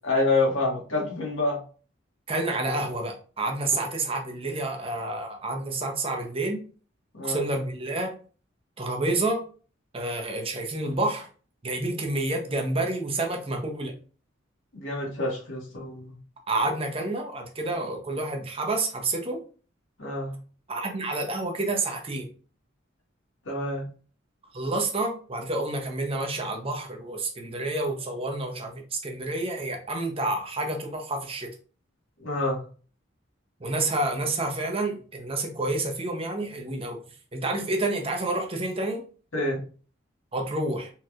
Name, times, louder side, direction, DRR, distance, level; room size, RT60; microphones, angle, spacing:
voice 1, 0.0-1.6 7.1-7.4 14.7-16.2 20.0-20.3 23.5-23.9 32.2-32.6 39.3-39.6, left 2 dB, 75° left, -3 dB, 1.8 m, -27 dB
voice 2, 2.3-6.6 7.2-8.1 8.8-9.4 9.9-11.3 11.6-13.9 16.5-19.4 20.7-22.3 24.5-31.5 33.6-37.0 37.3-39.0 40.3-40.9, right 2 dB, 30° right, 3 dB, 0.8 m, -29 dB
4.3 x 3.1 x 2.4 m, 0.39 s
head